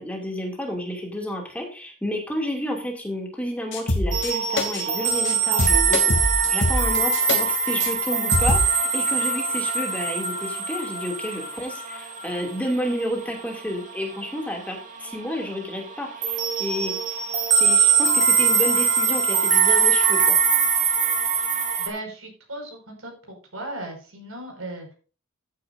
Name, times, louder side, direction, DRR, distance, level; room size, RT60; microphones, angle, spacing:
voice 1, 0.0-6.0 6.5-17.2 17.5-20.4, equal, 5° left, 0 dB, 2.5 m, -30 dB
sound 1, 3.7-4.3 4.6-4.8 5.1-5.3 5.6-7.4 7.8-7.9 8.3-8.7, left 1 dB, 60° left, 2.7 m, -23 dB
sound 2, 4.1-14.5 14.8-15.2 15.4-21.9, right 6 dB, 40° right, 2.8 m, -22 dB
voice 2, 21.8-24.9, right 1 dB, 80° right, 2 dB, 5.5 m, -37 dB
14.5 x 9.6 x 2.6 m, 0.37 s
head